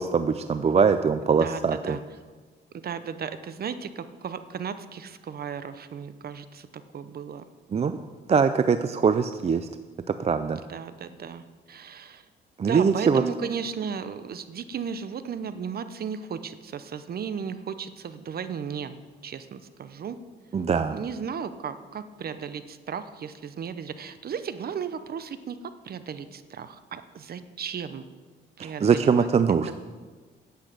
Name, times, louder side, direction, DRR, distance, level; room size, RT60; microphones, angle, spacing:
voice 1, 0.0-2.0 7.7-8.0 8.3-9.7 10.2-10.6 12.6-13.2 20.5-21.0 28.6-29.8, right 6 dB, 30° right, 10 dB, 0.5 m, -22 dB
voice 2, 1.2-2.0 2.7-7.4 10.7-12.2 12.7-18.9 19.2-20.2 20.9-25.6 25.8-28.0 28.6-29.3, right 7 dB, 50° right, 12 dB, 0.8 m, -35 dB
10.0 x 8.2 x 6.7 m, 1.4 s
cardioid pair, 90°, 20 cm